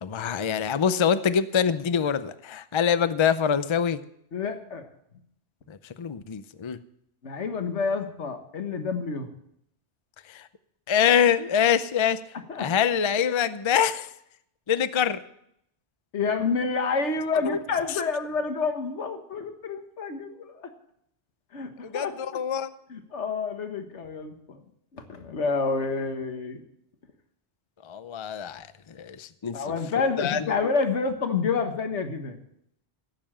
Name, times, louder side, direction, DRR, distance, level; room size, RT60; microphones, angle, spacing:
voice 1, 0.0-4.0 5.7-6.8 10.3-10.5 10.9-12.2 12.6-14.1 14.7-15.2 17.4-17.6 21.8-22.7 27.8-29.6 30.2-30.6, left 8 dB, 35° left, 13 dB, 0.5 m, -25 dB
voice 2, 4.3-4.9 7.2-9.3 12.5-12.7 16.1-20.7 21.5-22.4 22.9-24.6 24.9-26.6 29.5-32.4, left 4 dB, 80° left, 6 dB, 1.7 m, -29 dB
16.0 x 6.9 x 7.5 m, 0.73 s
omnidirectional pair, 1.2 m